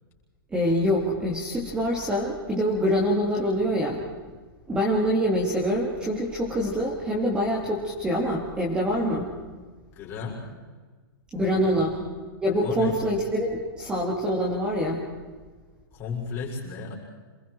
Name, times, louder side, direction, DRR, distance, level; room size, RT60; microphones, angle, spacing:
voice 1, 0.5-4.0 4.7-9.3 11.3-11.9 12.4-15.0, equal, 5° right, -3 dB, 2.6 m, -25 dB
voice 2, 9.9-10.4 11.5-11.9 12.6-13.0 15.9-17.0, left 5 dB, 20° left, -3 dB, 6.1 m, -34 dB
27.5 x 21.0 x 4.7 m, 1.4 s
hypercardioid pair, 170°, 12 cm